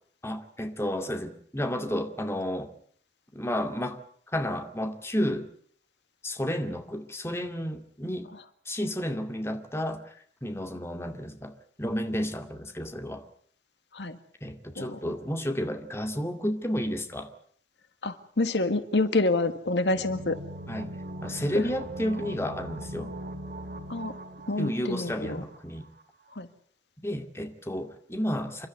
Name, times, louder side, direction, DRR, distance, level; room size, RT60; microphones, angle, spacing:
voice 1, 0.2-2.7 3.3-4.0 4.3-5.5 6.2-8.3 8.7-10.1 10.4-13.2 14.4-17.3 20.7-20.9 21.2-23.1 24.6-25.9 27.0-28.7, equal, 15° left, 2.3 m, -31 dB
voice 2, 18.0-20.4 23.9-24.2 24.5-25.4 26.3-26.5, left 2 dB, 85° left, 1.7 m, -27 dB
sound 1, 19.9-25.6 25.8-25.9, right 1 dB, 60° right, 2.4 m, -40 dB
29.0 x 12.5 x 9.3 m
head